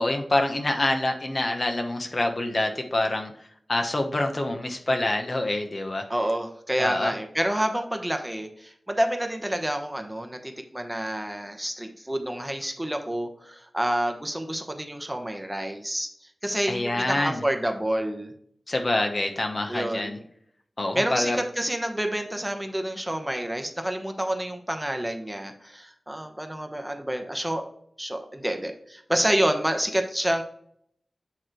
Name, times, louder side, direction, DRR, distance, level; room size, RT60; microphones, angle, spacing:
voice 1, 0.0-3.3 3.7-6.0 6.8-7.1 16.7-17.4 18.7-20.2 20.8-21.4, left 2 dB, 45° left, 4 dB, 1.0 m, -26 dB
voice 2, 6.1-18.3 19.7-20.2 20.9-27.7 28.0-30.4, right 1 dB, 10° right, 5 dB, 0.9 m, -28 dB
8.9 x 3.1 x 4.5 m, 0.66 s
wide cardioid pair, 65°, 0 cm